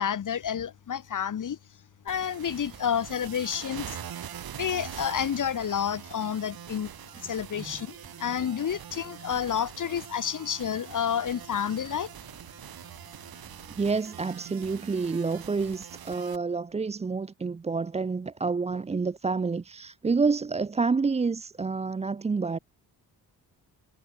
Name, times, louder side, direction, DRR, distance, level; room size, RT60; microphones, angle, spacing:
voice 1, 0.0-1.6 2.1-4.0 4.5-6.9 7.2-12.1, left 8 dB, 50° left, 1.8 m, -30 dB
sound 1, 2.1-16.4, right 9 dB, 70° right, 4.4 m, -43 dB
voice 2, 13.7-22.6, right 4 dB, 15° right, 0.5 m, -28 dB
cardioid pair, 115°, 38 cm